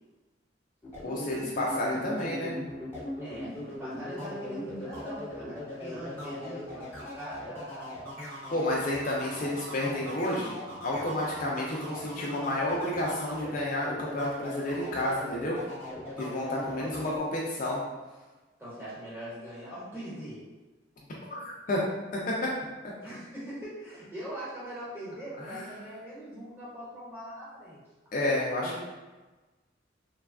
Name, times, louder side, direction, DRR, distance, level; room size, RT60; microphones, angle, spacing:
sound 1, 0.8-17.2, left 1 dB, 10° left, 0.9 m, -39 dB
voice 1, 1.0-2.5 8.5-10.5 10.8-15.6 16.2-17.8 21.3-21.8 22.1-22.5 25.4-25.7 28.1-28.8, left 1 dB, 45° left, -3 dB, 0.4 m, -30 dB
voice 2, 3.2-7.9 16.5-16.9 18.6-20.4 23.0-27.8 28.6-28.8, equal, 10° right, -9 dB, 1.1 m, -41 dB
3.2 x 2.2 x 2.3 m, 1.2 s
head